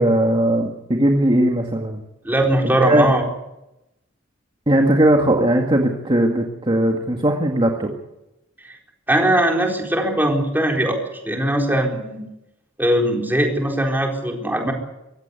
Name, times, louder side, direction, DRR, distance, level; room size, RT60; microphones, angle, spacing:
voice 1, 0.0-2.0 2.6-3.1 4.7-7.9, right 1 dB, 25° right, 2 dB, 2.0 m, -18 dB
voice 2, 2.2-3.2 9.1-11.0 11.2-12.2 12.8-14.7, right 1 dB, 10° right, 1 dB, 4.2 m, -20 dB
24.0 x 16.5 x 8.3 m, 0.90 s
head